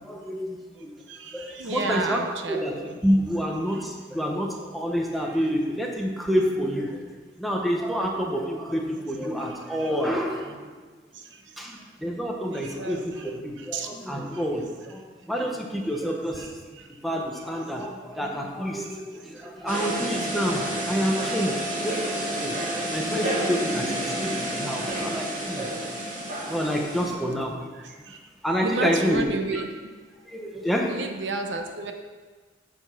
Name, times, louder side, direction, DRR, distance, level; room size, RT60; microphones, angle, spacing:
voice 1, 0.0-0.9 1.3-2.2 2.5-10.7 11.6-13.1 13.4-16.6 17.0-25.7 26.4-28.0 28.4-29.2 29.5-29.6 30.3-30.9, equal, ahead, -1 dB, 1.0 m, -28 dB
voice 2, 1.1-3.0 3.7-3.8 5.4-5.5 9.8-9.9 12.5-13.2 13.6-13.9 15.4-15.5 16.4-16.5 27.1-27.2 28.1-28.2 28.6-29.7 30.9-31.9, right 3 dB, 85° right, 5 dB, 0.9 m, -32 dB
sound 1, 19.7-27.1, right 1 dB, 45° right, 2.4 m, -29 dB
9.5 x 5.3 x 6.2 m, 1.4 s
head